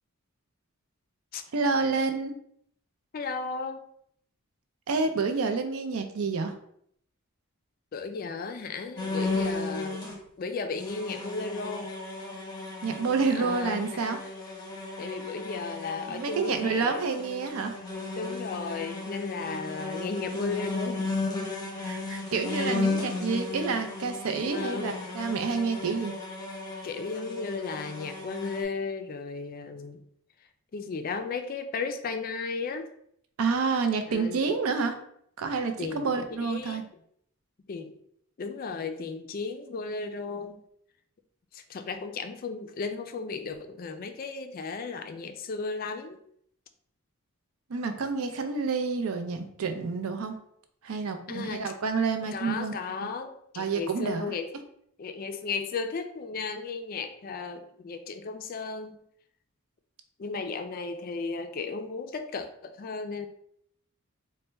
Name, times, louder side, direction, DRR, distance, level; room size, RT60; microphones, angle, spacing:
voice 1, 1.5-2.3 4.9-6.5 12.8-14.2 16.1-17.7 21.8-26.1 33.4-35.0 35.4-36.8 47.7-50.3 50.8-52.7 53.0-53.1 53.6-54.3, right 4 dB, 80° right, 7 dB, 0.5 m, -29 dB
voice 2, 3.1-3.8 7.9-10.1 10.4-11.9 13.3-14.1 15.0-17.0 18.2-21.0 24.5-25.1 26.8-30.0 30.7-32.9 34.1-34.5 35.8-36.1 36.4-36.8 37.7-38.0 38.4-40.6 41.5-46.2 51.3-51.6 52.3-54.6 55.0-58.9 60.2-63.3, left 4 dB, 40° left, 8 dB, 0.3 m, -35 dB
sound 1, 9.0-10.2 10.7-28.6, left 3 dB, 20° left, 0.7 m, -35 dB
4.1 x 2.1 x 3.3 m, 0.69 s
head